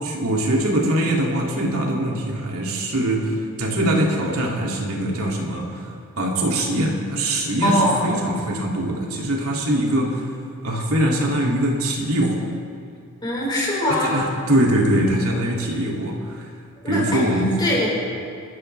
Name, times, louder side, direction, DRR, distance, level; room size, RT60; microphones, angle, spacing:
voice 1, 0.0-5.9 6.2-10.2 10.6-12.5 14.1-16.5 16.8-17.6, right 1 dB, 75° right, -2 dB, 2.6 m, -22 dB
voice 2, 7.6-8.1 13.2-14.2 16.8-17.3 17.6-17.9, left 1 dB, 20° left, -5 dB, 4.8 m, -21 dB
29.0 x 13.5 x 3.4 m, 2.2 s
head